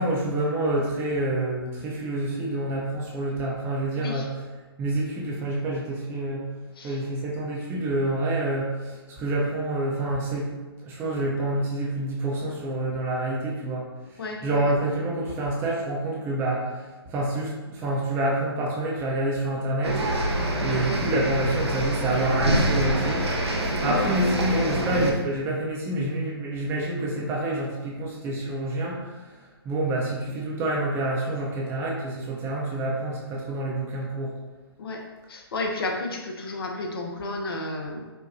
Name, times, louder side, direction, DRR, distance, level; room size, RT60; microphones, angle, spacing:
voice 1, 0.0-4.4 4.8-6.4 6.8-10.5 10.8-13.9 14.4-20.0 20.6-23.3 23.6-29.3 29.6-34.3, right 1 dB, 15° right, -3 dB, 0.5 m, -27 dB
voice 2, 3.9-4.3 6.8-7.0 14.2-14.7 23.9-24.1 34.8-35.0 35.3-38.1, left 2 dB, 60° left, 1 dB, 0.6 m, -32 dB
sound 1, 19.8-25.1, right 1 dB, 85° right, 0.7 m, -25 dB
4.6 x 2.1 x 2.6 m, 1.2 s
figure-of-eight pair, 130°, 14 cm